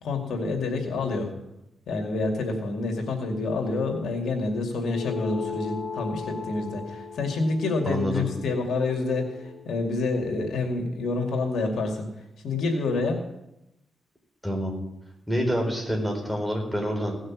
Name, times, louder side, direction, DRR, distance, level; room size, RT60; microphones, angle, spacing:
voice 1, 0.0-1.3 1.9-12.1 12.4-13.2, left 3 dB, 80° left, 2 dB, 2.4 m, -28 dB
sound 1, 4.9-9.7, left 6 dB, 55° left, 0.8 m, -37 dB
voice 2, 7.8-8.2 14.4-14.7 15.3-17.2, equal, ahead, 0 dB, 4.1 m, -27 dB
17.5 x 6.5 x 7.3 m, 0.86 s
cardioid pair, 95°, 0 cm